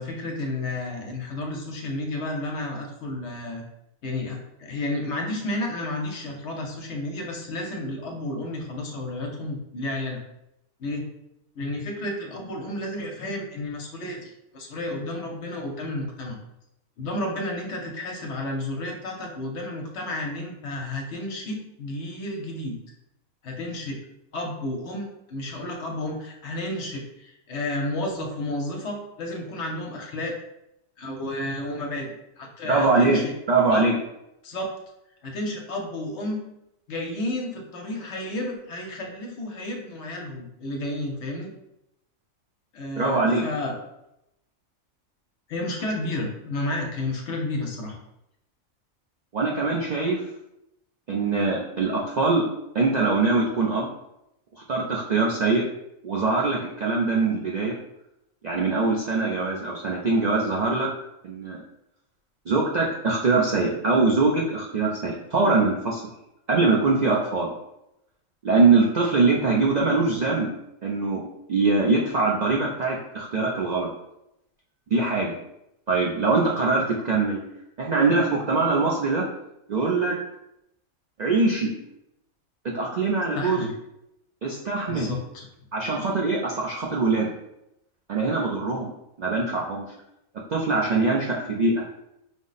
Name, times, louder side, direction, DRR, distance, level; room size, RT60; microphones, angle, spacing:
voice 1, 0.0-3.6 4.0-10.2 10.8-11.0 11.6-16.4 17.0-22.8 23.4-24.0 24.3-30.3 31.0-32.1 32.4-33.3 33.7-33.9 34.4-34.7 35.2-36.4 36.9-41.5 42.7-43.8 45.5-48.0 83.3-83.7 84.9-85.4, left 1 dB, 60° left, 1 dB, 1.0 m, -31 dB
voice 2, 32.7-33.2 33.5-34.0 43.0-43.5 49.3-50.2 51.1-52.4 52.7-53.9 54.7-55.6 56.0-57.8 58.4-60.9 61.2-61.6 62.5-66.0 66.5-67.5 68.4-70.5 70.8-71.2 71.5-73.9 74.9-75.4 75.9-77.4 77.8-79.2 79.7-80.2 81.2-81.7 82.7-83.7 84.4-85.1 85.7-87.3 88.1-88.9 89.2-89.8 90.5-91.9, right 3 dB, 65° right, -2 dB, 0.4 m, -23 dB
5.1 x 2.1 x 3.9 m, 0.85 s
omnidirectional pair, 1.4 m